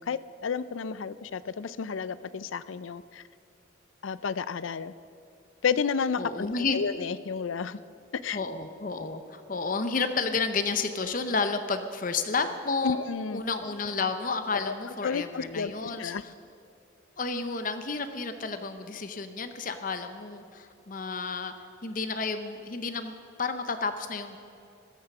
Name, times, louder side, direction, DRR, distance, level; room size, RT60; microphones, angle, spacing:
voice 1, 0.0-3.2 4.0-4.9 5.6-7.8 8.1-8.4 12.8-13.5 14.5-14.7 15.0-16.2, left 6 dB, 90° left, 16 dB, 0.5 m, -31 dB
voice 2, 6.2-6.8 8.3-13.0 13.3-16.1 17.2-21.5 21.8-24.4, left 4 dB, 45° left, 9 dB, 0.7 m, -31 dB
14.5 x 12.5 x 6.0 m, 2.7 s
head